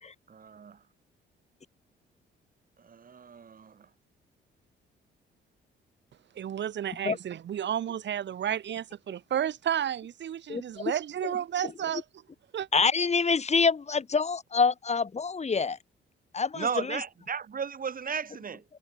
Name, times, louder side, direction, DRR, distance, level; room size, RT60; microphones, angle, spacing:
voice 1, 0.3-0.8 2.8-3.9 16.5-18.6, right 6 dB, 45° right, 6.2 m, -35 dB
voice 2, 6.4-12.0 12.5-12.7, right 10 dB, 65° right, 5.9 m, -32 dB
voice 3, 10.5-10.8 11.2-11.3 11.6-11.7 12.7-15.8 16.3-17.0, left 5 dB, 35° left, 3.7 m, -26 dB
cardioid pair, 90°, 20 cm